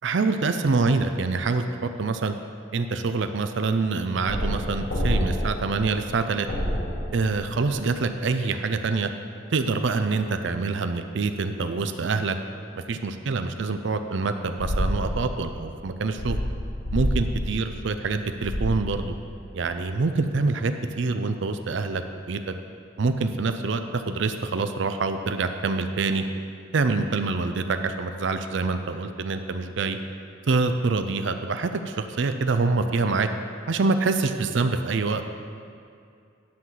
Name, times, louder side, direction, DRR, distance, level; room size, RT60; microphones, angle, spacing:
voice 1, 0.0-2.3 2.7-6.5 7.1-9.1 9.5-12.4 12.8-16.4 16.9-19.1 19.5-22.4 23.0-26.2 26.7-30.0 30.5-33.3 33.7-35.3, right 3 dB, 70° right, 8 dB, 0.5 m, -26 dB
sound 1, 4.3-8.0 14.6-19.5, equal, 70° left, 1.7 m, -29 dB
10.5 x 3.9 x 7.4 m, 2.4 s
head